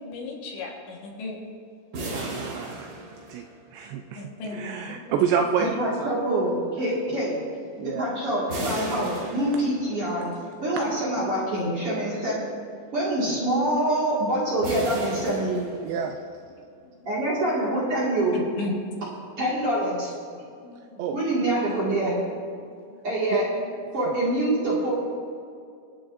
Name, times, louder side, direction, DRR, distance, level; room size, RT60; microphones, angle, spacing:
voice 1, 0.0-1.4 4.0-5.2 6.1-6.6 7.5-8.2 8.7-9.3 9.9-10.1 10.4-10.5 10.8-11.0 16.8-16.9 18.3-18.8 20.3-21.4 22.5-22.8 23.4-23.7, left 2 dB, 75° left, -1 dB, 3.8 m, -38 dB
Metal Splash Impact, 1.9-3.8 8.5-10.1 14.6-16.3, right 2 dB, 65° right, 1.4 m, -35 dB
voice 2, 2.1-2.9 3.3-3.4 3.7-4.2 4.5-6.1 7.8-8.1 13.3-13.4 15.8-16.2 21.0-21.2 23.3-23.4, right 7 dB, 85° right, 4 dB, 2.5 m, -28 dB
voice 3, 5.6-7.4 7.8-10.2 10.6-12.5 12.9-15.6 17.0-18.4 19.4-20.1 21.1-22.2 23.0-23.5 23.9-24.9, right 1 dB, 45° right, -7 dB, 2.2 m, -25 dB
25.0 x 8.7 x 2.6 m, 2.4 s
omnidirectional pair, 5.3 m